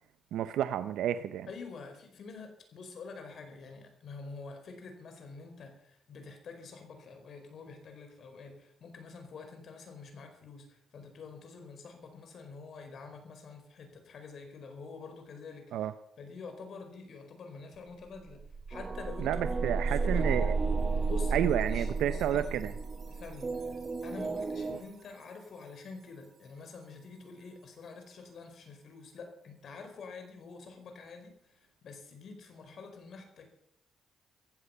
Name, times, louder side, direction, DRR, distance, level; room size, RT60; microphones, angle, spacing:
voice 1, 0.3-1.5 15.7-15.9 19.2-20.6 21.3-22.7, right 11 dB, 80° right, 12 dB, 0.7 m, -31 dB
voice 2, 1.5-15.9 16.2-18.4 18.7-20.5 21.1-22.7 23.1-33.5, left 4 dB, 60° left, 6 dB, 4.6 m, -47 dB
sound 1, 17.7-17.8 18.1-24.9, right 4 dB, 55° right, 3.2 m, -33 dB
sound 2, 18.7-24.8, right 4 dB, 30° right, 1.1 m, -38 dB
15.0 x 15.0 x 5.7 m, 0.72 s
cardioid pair, 90°, 0 cm